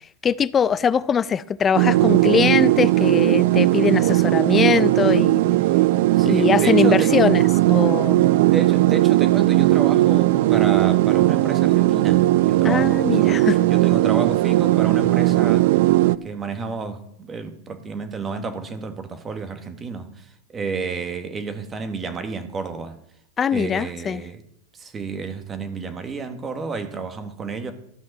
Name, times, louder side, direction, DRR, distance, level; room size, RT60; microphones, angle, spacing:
voice 1, 0.2-5.4 6.2-8.2 12.6-13.6 23.4-24.2, left 7 dB, 20° left, 0.4 m, -22 dB
sound 1, 1.8-16.2, right 17 dB, 65° right, 0.4 m, -17 dB
voice 2, 6.1-7.2 8.5-15.7 16.2-23.0 23.5-24.4 24.7-27.7, right 4 dB, 20° right, 1.3 m, -31 dB
13.0 x 7.3 x 6.5 m
supercardioid pair, 135°, 0 cm